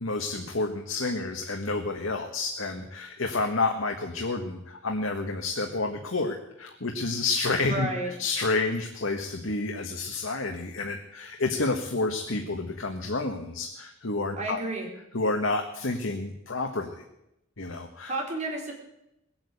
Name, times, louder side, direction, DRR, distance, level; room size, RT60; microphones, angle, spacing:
voice 1, 0.0-14.6 15.1-16.9 17.6-18.1, left 3 dB, 85° left, 3 dB, 1.5 m, -29 dB
voice 2, 7.7-8.1 14.4-14.9 18.1-18.7, right 2 dB, 35° right, 0 dB, 4.0 m, -31 dB
19.5 x 8.8 x 8.4 m, 0.85 s
head